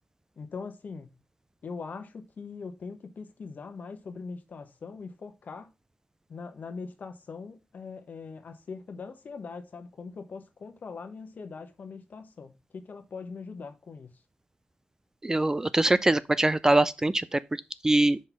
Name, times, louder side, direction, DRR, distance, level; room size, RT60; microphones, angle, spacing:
voice 1, 0.4-1.1 1.6-5.7 6.3-14.1, left 4 dB, 60° left, 1.0 m, -41 dB
voice 2, 15.2-18.2, right 2 dB, 20° right, 0.4 m, -23 dB
5.3 x 4.0 x 5.9 m
wide cardioid pair, 105°, 3 cm